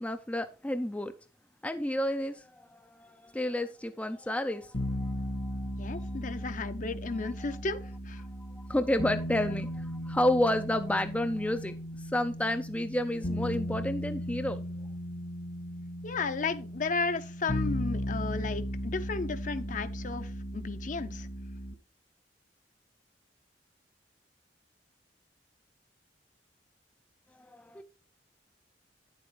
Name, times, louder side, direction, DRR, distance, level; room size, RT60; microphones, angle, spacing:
voice 1, 0.0-1.1 1.6-6.2 6.4-6.5 7.4-7.5 8.7-11.7 12.1-14.6 27.5-27.8, left 1 dB, 10° left, 0.4 m, -31 dB
sound 1, 4.7-21.7, equal, 70° left, 1.8 m, -36 dB
voice 2, 5.8-8.2 16.0-21.3, left 4 dB, 45° left, 0.6 m, -34 dB
9.5 x 7.6 x 3.1 m
head